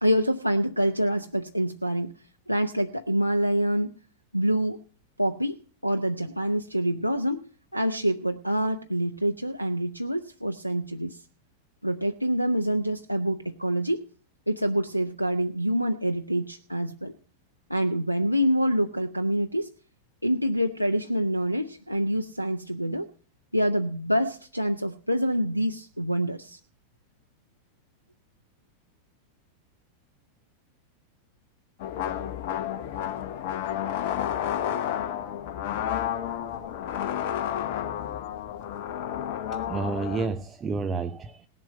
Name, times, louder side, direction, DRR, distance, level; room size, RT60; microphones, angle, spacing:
voice 1, 0.0-2.1 2.5-3.9 4.3-4.8 5.2-5.6 5.8-7.5 7.7-11.2 11.8-14.0 14.5-17.1 17.7-19.7 20.2-23.1 23.5-26.6, equal, 90° left, 9 dB, 0.5 m, -26 dB
sound 1, 31.8-40.3, left 10 dB, 50° left, 0.9 m, -31 dB
voice 2, 39.5-41.5, right 4 dB, 20° right, 10 dB, 0.6 m, -31 dB
18.5 x 7.4 x 5.3 m, 0.42 s
figure-of-eight pair, 90°, 0 cm